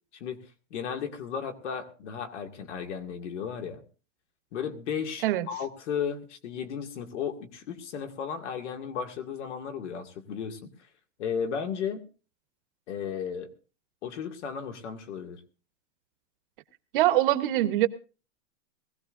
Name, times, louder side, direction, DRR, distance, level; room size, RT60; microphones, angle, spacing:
voice 1, 0.7-3.8 4.5-10.7 11.2-12.0 12.9-13.5 14.0-15.4, left 7 dB, 65° left, 6 dB, 2.3 m, -34 dB
voice 2, 16.9-17.9, right 14 dB, 45° right, 11 dB, 1.1 m, -23 dB
20.5 x 16.5 x 2.6 m, 0.35 s
supercardioid pair, 170°, 38 cm